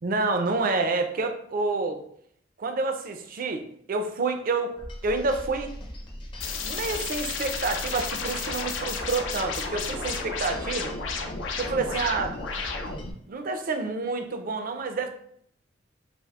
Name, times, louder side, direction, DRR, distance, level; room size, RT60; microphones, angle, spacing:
voice 1, 0.0-2.0 2.6-4.8 5.0-5.7 6.6-10.9 11.6-12.4 13.3-15.1, right 3 dB, 45° right, 6 dB, 0.4 m, -28 dB
sound 1, 4.8-13.1, equal, 25° left, 0.5 m, -40 dB
sound 2, 6.4-13.1, left 5 dB, 80° left, 0.5 m, -33 dB
6.0 x 2.0 x 2.3 m, 0.67 s
head